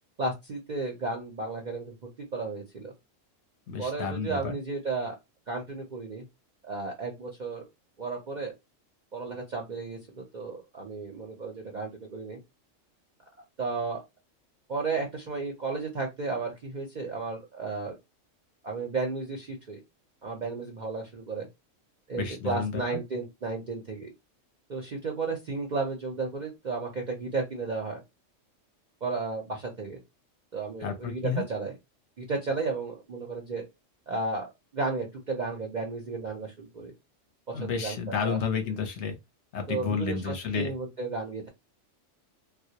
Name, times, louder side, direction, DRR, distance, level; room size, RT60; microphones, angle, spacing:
voice 1, 0.2-1.9 2.3-2.9 3.8-5.2 5.5-6.2 6.6-7.6 8.0-8.5 9.1-12.4 13.6-14.0 14.7-18.0 18.6-19.8 20.2-21.5 22.1-24.1 24.7-28.0 29.0-30.0 30.5-31.7 32.2-33.6 34.1-34.5 34.7-36.9 37.5-38.4 39.7-41.5, right 3 dB, 55° right, 0.5 m, -33 dB
voice 2, 3.7-4.6 22.1-23.0 30.8-31.4 37.5-39.2 39.5-40.7, left 6 dB, 65° left, 0.8 m, -31 dB
2.3 x 2.0 x 2.7 m
omnidirectional pair, 1.4 m